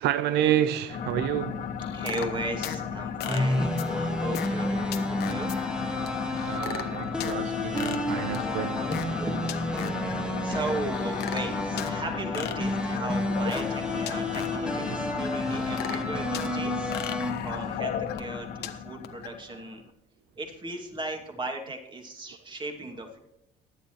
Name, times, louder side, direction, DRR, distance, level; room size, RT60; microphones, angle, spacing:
voice 1, 0.0-1.7 6.4-8.8 14.9-15.0, right 11 dB, 80° right, 0.5 m, -29 dB
sound 1, 0.9-19.8, left 7 dB, 55° left, 1.5 m, -35 dB
sound 2, 1.8-2.8 3.2-4.6 4.9-5.6 6.1-6.2 6.4-7.3 7.8-9.2 9.5-10.1 10.7-12.0 12.3-13.8 14.0-14.7 15.2-16.5 16.9-18.7 19.0-19.3, left 10 dB, 75° left, 1.2 m, -36 dB
voice 2, 1.9-5.5 8.8-16.9 17.4-19.8 20.4-23.2, right 2 dB, 30° right, 2.4 m, -37 dB
sound 3, 3.3-17.3, left 1 dB, 5° right, 1.6 m, -31 dB
17.0 x 10.5 x 3.1 m
cardioid pair, 110°, 17 cm